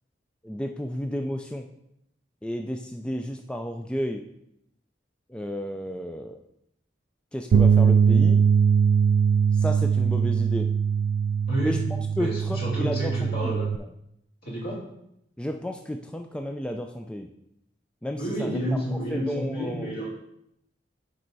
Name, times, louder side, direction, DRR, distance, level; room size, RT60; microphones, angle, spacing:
voice 1, 0.4-1.7 2.4-4.2 5.3-6.4 7.3-8.4 9.5-10.7 11.6-11.8 12.2-13.9 15.4-17.3 18.0-18.6 18.9-19.9, equal, 5° left, 3 dB, 0.4 m, -32 dB
sound 1, 7.5-13.8, right 7 dB, 80° right, 0.3 m, -21 dB
voice 2, 12.2-13.7 14.4-14.8 18.2-20.1, equal, 55° left, -4 dB, 3.0 m, -30 dB
7.6 x 5.6 x 4.0 m, 0.78 s
head